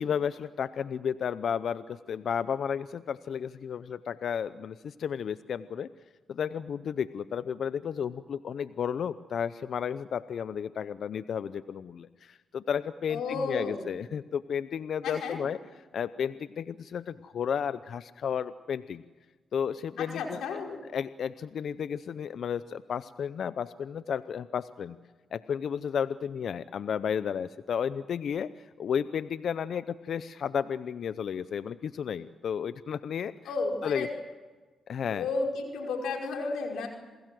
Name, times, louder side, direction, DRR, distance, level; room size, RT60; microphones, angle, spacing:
voice 1, 0.0-5.9 6.3-15.6 15.9-19.0 19.5-20.4 20.9-25.0 25.3-28.5 28.8-33.3 33.8-34.1 34.9-35.3, left 7 dB, 70° left, 14 dB, 0.7 m, -32 dB
voice 2, 13.1-13.8 15.0-15.4 20.0-20.8 33.5-34.1 35.1-36.9, left 3 dB, 85° left, 1 dB, 5.2 m, -32 dB
28.0 x 21.5 x 7.8 m, 1.3 s
cardioid pair, 60°, 0 cm